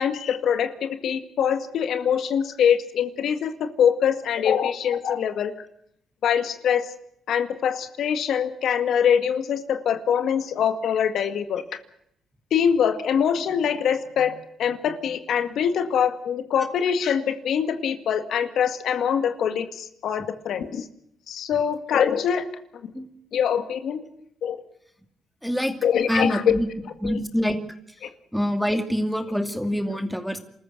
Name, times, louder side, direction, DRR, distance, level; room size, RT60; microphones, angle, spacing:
voice 1, 0.0-5.5 6.2-6.9 7.3-11.6 12.5-14.3 14.6-20.9 21.3-22.5 22.8-22.9 23.3-24.0 24.4-24.6 25.8-26.4 27.0-27.1, left 8 dB, 70° left, 8 dB, 2.0 m, -24 dB
voice 2, 25.4-25.8 26.1-26.7 27.0-27.6 28.3-30.4, equal, ahead, 8 dB, 2.5 m, -25 dB
27.0 x 14.5 x 7.9 m, 0.73 s
cardioid pair, 90°, 0 cm